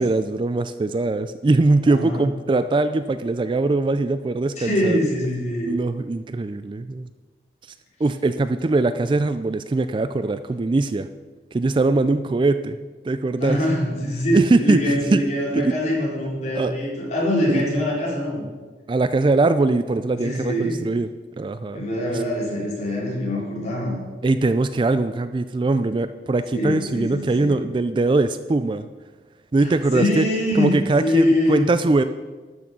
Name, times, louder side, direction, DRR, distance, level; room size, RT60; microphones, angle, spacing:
voice 1, 0.0-5.0 5.6-7.1 8.0-11.1 11.5-12.8 13.0-13.6 14.3-15.2 15.5-15.8 16.5-16.9 17.5-17.7 18.9-21.1 21.4-21.9 22.1-22.2 24.2-28.9 29.5-30.3 30.5-32.0, right 3 dB, 30° right, 11 dB, 0.3 m, -21 dB
voice 2, 1.9-2.2 4.6-5.7 13.4-18.4 20.1-20.8 21.7-24.0 26.5-27.6 29.6-30.7 31.0-31.7, left 1 dB, 40° left, -5 dB, 3.8 m, -23 dB
12.5 x 6.3 x 6.0 m, 1.3 s
head